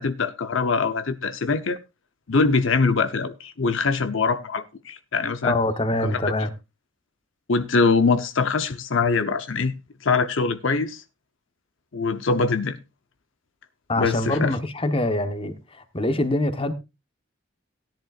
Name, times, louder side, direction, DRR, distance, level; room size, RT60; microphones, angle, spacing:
voice 1, 0.0-1.8 2.3-5.5 6.0-6.2 7.5-9.7 10.0-11.0 11.9-12.8 14.0-14.5, left 4 dB, 75° left, 0.8 m, -23 dB
voice 2, 5.4-6.5 13.9-16.7, left 1 dB, 25° left, 1.1 m, -24 dB
17.0 x 10.5 x 2.4 m
head